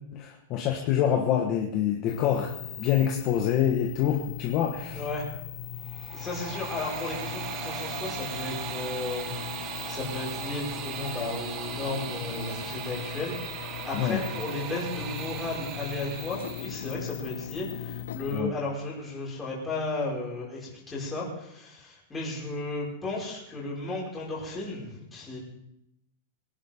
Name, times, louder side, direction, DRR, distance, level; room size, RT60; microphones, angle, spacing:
voice 1, 0.1-5.0 13.9-14.2 18.3-18.5, left 9 dB, 30° left, 2 dB, 1.3 m, -26 dB
sound 1, 2.1-18.4, left 9 dB, 90° left, 1.2 m, -39 dB
voice 2, 4.9-5.3 6.1-9.3 9.6-25.4, left 2 dB, 10° left, -5 dB, 5.2 m, -34 dB
sound 2, 5.8-16.9, right 8 dB, 30° right, 0.9 m, -38 dB
24.0 x 11.0 x 3.6 m, 0.82 s
supercardioid pair, 165°, 0 cm